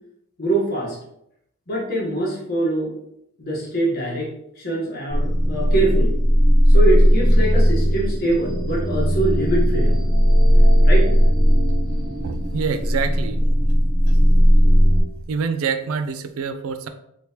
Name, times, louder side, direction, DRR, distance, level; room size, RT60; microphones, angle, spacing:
voice 1, 0.4-1.0 1.7-3.0 3.4-4.3 4.6-6.2 6.7-10.0 10.8-11.1, right 2 dB, 45° left, -3 dB, 1.1 m, -23 dB
sound 1, 5.1-15.0, equal, 15° right, 0.6 m, -16 dB
voice 2, 12.2-13.8 14.1-14.2 15.3-16.9, right 5 dB, 65° right, 9 dB, 0.3 m, -26 dB
3.4 x 3.0 x 2.8 m, 0.78 s
head